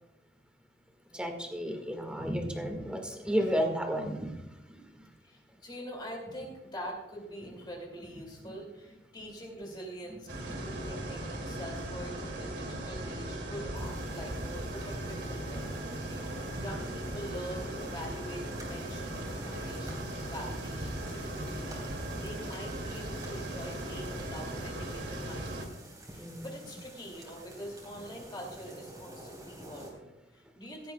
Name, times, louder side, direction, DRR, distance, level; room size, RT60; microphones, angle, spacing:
voice 1, 1.1-4.4 4.7-4.8 8.4-8.6 10.5-10.6 26.2-26.5, equal, 5° right, 3 dB, 1.8 m, -32 dB
voice 2, 5.2-25.8 26.1-30.9, equal, 25° left, 0 dB, 2.5 m, -44 dB
sound 1, 10.3-25.7, right 1 dB, 80° right, 2.5 m, -38 dB
sound 2, 13.7-29.9, right 1 dB, 20° right, 3.8 m, -50 dB
16.5 x 13.0 x 2.3 m, 1.0 s
head